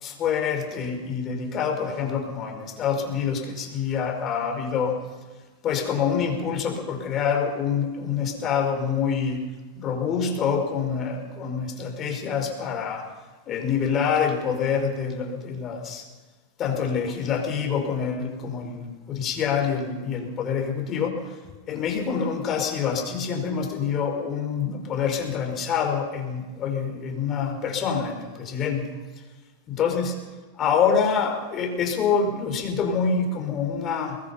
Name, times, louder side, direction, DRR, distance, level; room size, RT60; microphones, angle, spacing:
voice 1, 0.0-5.0 5.6-9.5 9.8-13.1 13.5-16.1 16.6-21.4 21.7-28.9 29.7-30.2 30.6-34.2, left 6 dB, 35° left, 4 dB, 5.2 m, -26 dB
23.0 x 21.0 x 5.8 m, 1.3 s
hypercardioid pair, 115°, 0 cm